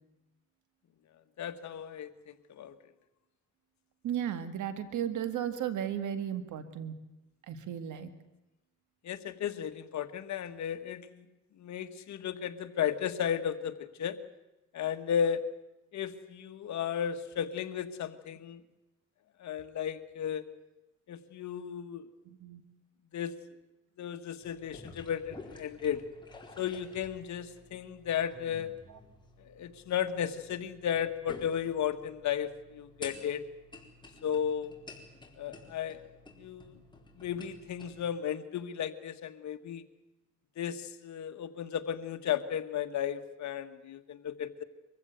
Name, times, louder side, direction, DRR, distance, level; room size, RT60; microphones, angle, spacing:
voice 1, 1.4-2.8 9.0-11.2 11.6-14.2 14.7-15.4 15.9-18.6 19.4-20.5 21.1-22.1 23.1-23.4 24.0-26.0 26.6-28.7 29.4-33.4 34.2-34.7 35.4-36.1 36.4-36.8 37.2-39.9 40.6-44.6, left 9 dB, 65° left, 9 dB, 1.6 m, -34 dB
voice 2, 4.0-6.9 7.5-8.1 22.3-22.6, right 9 dB, 75° right, 11 dB, 2.0 m, -35 dB
sound 1, 24.4-38.1, left 3 dB, 15° left, 4.0 m, -52 dB
23.5 x 15.5 x 9.3 m, 1.0 s
cardioid pair, 90°, 30 cm